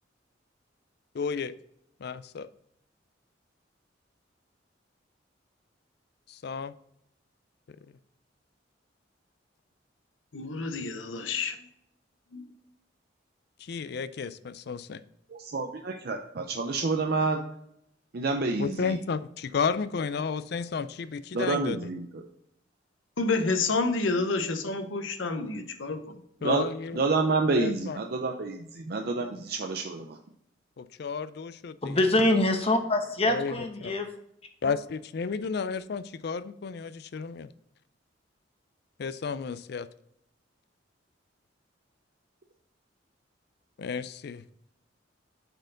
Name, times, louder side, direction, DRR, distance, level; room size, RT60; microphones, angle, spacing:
voice 1, 1.1-1.5 2.0-2.5 6.3-6.7 13.6-15.0 18.6-21.9 26.4-27.0 27.5-28.0 30.8-32.1 33.2-33.9 34.6-37.5 39.0-39.9 43.8-44.4, left 5 dB, 55° left, 15 dB, 0.4 m, -32 dB
voice 2, 10.3-11.5 12.3-12.4 23.2-26.0, left 3 dB, 90° left, 7 dB, 0.9 m, -29 dB
voice 3, 15.4-17.4 18.1-18.9 21.3-22.2 26.4-26.6 27.0-30.2, right 3 dB, 55° right, 4 dB, 0.5 m, -28 dB
voice 4, 31.8-34.1, left 1 dB, 30° left, 5 dB, 1.0 m, -24 dB
7.9 x 4.5 x 3.8 m, 0.76 s
head